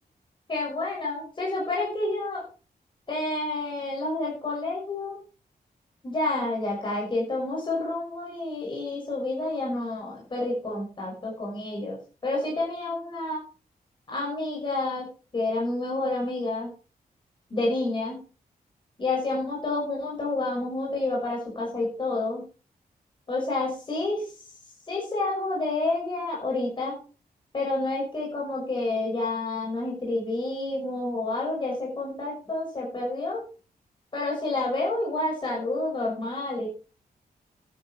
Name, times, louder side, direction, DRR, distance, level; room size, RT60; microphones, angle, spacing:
voice 1, 0.5-2.4 3.1-5.2 6.0-13.4 14.1-15.1 15.3-16.7 17.5-18.2 19.0-22.4 23.3-24.2 24.9-27.0 27.5-33.4 34.1-36.7, left 2 dB, 30° left, -3 dB, 6.2 m, -29 dB
12.5 x 11.0 x 4.5 m, 0.36 s
wide cardioid pair, 180°, 16 cm